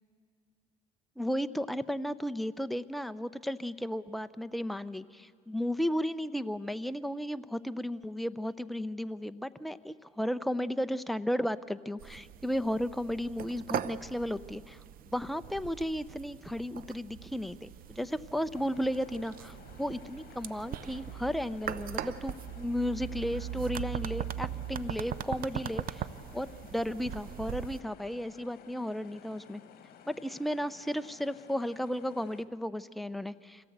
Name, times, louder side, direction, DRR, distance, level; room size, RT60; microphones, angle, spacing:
voice 1, 1.2-14.8 15.1-26.0 26.3-29.6 30.1-33.6, equal, ahead, 11 dB, 0.6 m, -34 dB
sound 1, 12.0-27.8, right 11 dB, 60° right, 0.7 m, -40 dB
sound 2, 18.5-32.4, left 8 dB, 65° left, 1.5 m, -55 dB
25.0 x 17.0 x 8.0 m, 2.2 s
cardioid pair, 110°, 17 cm